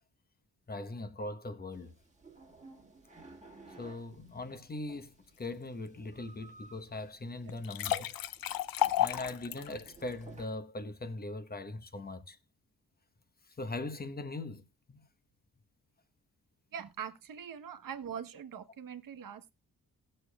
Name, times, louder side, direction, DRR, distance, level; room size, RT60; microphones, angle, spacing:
voice 1, 0.7-1.9 3.8-5.1 5.4-8.1 9.0-12.4 13.6-15.0, left 2 dB, 25° left, 1.0 m, -40 dB
sound 1, 1.7-10.5, right 3 dB, 20° right, 1.7 m, -56 dB
sound 2, 7.5-10.0, left 12 dB, 75° left, 0.5 m, -32 dB
voice 2, 16.7-19.5, right 8 dB, 65° right, 1.1 m, -43 dB
19.0 x 6.6 x 2.3 m
wide cardioid pair, 140°, 35 cm